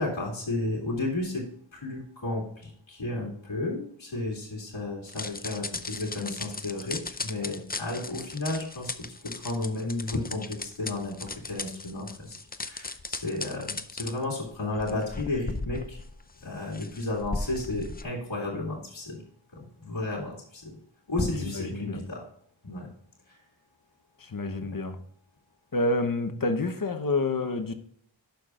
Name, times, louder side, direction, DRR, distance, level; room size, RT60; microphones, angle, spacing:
voice 1, 0.0-1.5 1.7-12.4 12.6-16.0 16.4-19.2 19.5-20.8 21.1-22.3 22.6-22.9 23.3-23.4 24.6-24.7, left 2 dB, 80° left, -3 dB, 2.3 m, -33 dB
sound 1, 5.1-18.0, left 3 dB, 20° left, 0.5 m, -37 dB
voice 2, 21.4-22.0 24.2-25.0 25.7-27.7, left 2 dB, 45° left, 8 dB, 0.9 m, -28 dB
11.5 x 5.8 x 2.4 m, 0.64 s
wide cardioid pair, 60°, 46 cm